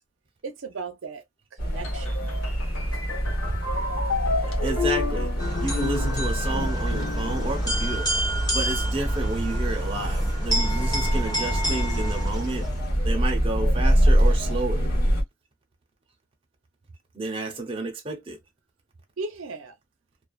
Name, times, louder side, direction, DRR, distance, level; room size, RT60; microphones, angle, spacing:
voice 1, 0.4-1.2 1.5-2.1 19.2-19.8, right 4 dB, 90° right, 0.6 m, -36 dB
sound 1, 1.6-15.2, equal, 45° left, 1.3 m, -25 dB
sound 2, 1.8-8.5, left 4 dB, 80° left, 0.9 m, -32 dB
voice 2, 4.6-5.3 5.6-12.7 13.0-14.9 17.1-18.4, right 2 dB, 25° right, 0.8 m, -31 dB
sound 3, 5.4-12.9, right 1 dB, 20° left, 0.9 m, -30 dB
2.5 x 2.3 x 2.3 m
head